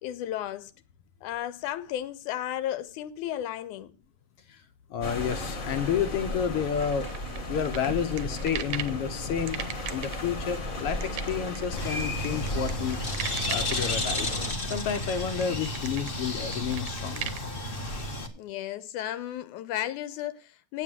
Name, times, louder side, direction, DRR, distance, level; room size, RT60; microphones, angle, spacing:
voice 1, 0.0-0.7 1.2-3.9 18.4-20.8, left 12 dB, 85° left, 2.2 m, -34 dB
voice 2, 4.9-7.1 7.5-9.6 9.9-13.0 13.5-17.3, left 8 dB, 70° left, 1.4 m, -30 dB
sound 1, 5.0-14.5, left 1 dB, 35° left, 1.6 m, -35 dB
sound 2, 6.8-9.0 9.5-17.4, right 11 dB, 70° right, 1.4 m, -38 dB
Bird, 11.7-18.3, left 2 dB, 50° left, 0.6 m, -32 dB
8.6 x 8.3 x 7.7 m
omnidirectional pair, 3.5 m